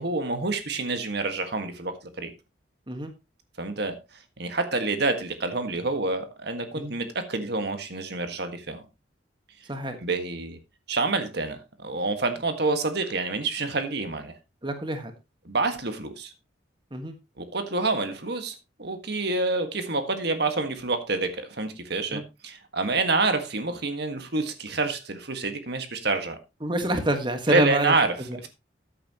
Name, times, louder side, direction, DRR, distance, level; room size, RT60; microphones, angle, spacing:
voice 1, 0.0-2.3 3.6-4.0 4.4-8.8 10.0-10.6 10.9-14.3 15.4-16.3 17.4-26.4 27.5-28.2, right 3 dB, 55° right, 1.7 m, -27 dB
voice 2, 14.6-15.1 16.9-17.1 22.1-22.2 26.6-27.9 28.3-28.5, right 1 dB, 25° right, 1.5 m, -27 dB
14.0 x 8.6 x 3.0 m
head